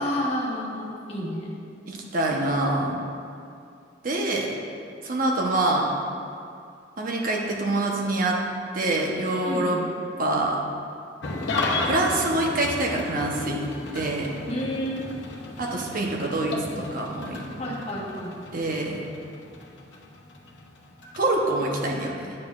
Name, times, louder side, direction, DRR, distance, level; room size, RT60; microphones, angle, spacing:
voice 1, 0.0-1.5 9.4-9.8 14.5-15.1 17.6-18.3, equal, 35° left, -5 dB, 1.2 m, -30 dB
voice 2, 1.9-3.0 4.0-4.5 5.0-5.9 7.0-8.4 8.7-9.8 10.2-10.6 11.8-13.6 13.9-14.4 15.6-17.4 18.5-19.0 21.2-22.3, right 2 dB, 50° right, -1 dB, 0.8 m, -25 dB
Engine starting / Idling, 11.2-21.8, left 2 dB, 70° left, 0.8 m, -34 dB
9.6 x 6.8 x 2.4 m, 2.5 s
head